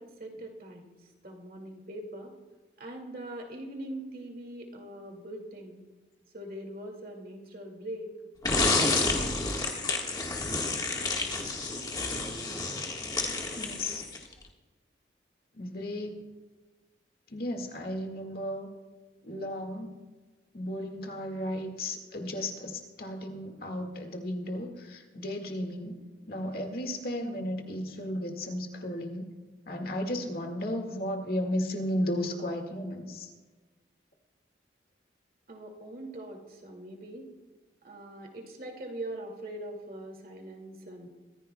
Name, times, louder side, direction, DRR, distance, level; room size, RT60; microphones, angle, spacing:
voice 1, 0.0-2.3 2.8-5.8 6.3-8.1 8.5-9.3 35.5-37.3 37.8-41.1, right 1 dB, 50° right, 2 dB, 2.2 m, -42 dB
sound 1, 8.4-14.3, left 3 dB, 20° left, 1.5 m, -29 dB
voice 2, 11.0-11.4 13.5-14.0 15.5-16.2 17.3-18.7 19.2-20.0 20.5-25.9 26.3-29.3 29.7-33.3, left 1 dB, 55° left, 4 dB, 1.9 m, -34 dB
24.0 x 15.0 x 2.3 m, 1.3 s
head